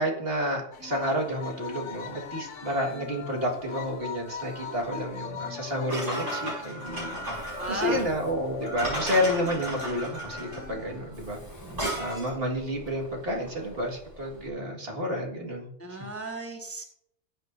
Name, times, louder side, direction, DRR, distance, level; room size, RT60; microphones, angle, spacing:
voice 1, 0.0-11.4 11.9-15.7, equal, 55° right, 0 dB, 2.1 m, -30 dB
sound 1, 0.7-11.0, left 6 dB, 80° left, 1.3 m, -41 dB
sound 2, 5.9-12.4, right 1 dB, 90° right, 5.6 m, -34 dB
Mechanisms, 6.9-14.5, equal, 30° left, 4.4 m, -47 dB
voice 2, 7.6-8.1 15.8-16.8, right 2 dB, 10° left, 2 dB, 1.2 m, -34 dB
19.0 x 8.0 x 2.6 m, 0.72 s
omnidirectional pair, 1.2 m